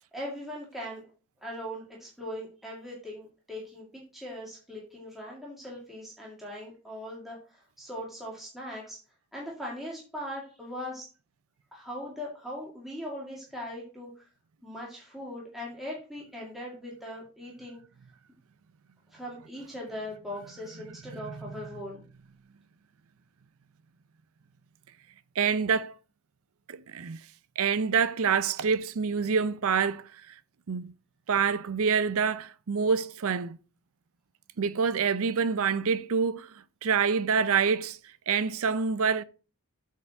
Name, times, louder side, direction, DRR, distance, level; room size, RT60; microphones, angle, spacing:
voice 1, 0.1-1.0 1.4-9.0 9.3-11.1 11.7-14.3 14.6-17.8 19.1-22.0, equal, ahead, 2.1 m, -40 dB
voice 2, 21.2-21.5 25.4-25.9 26.7-27.2 27.6-30.4 30.7-30.9 31.3-33.6 34.6-39.2, right 6 dB, 70° right, 0.5 m, -27 dB
8.3 x 4.6 x 5.8 m
head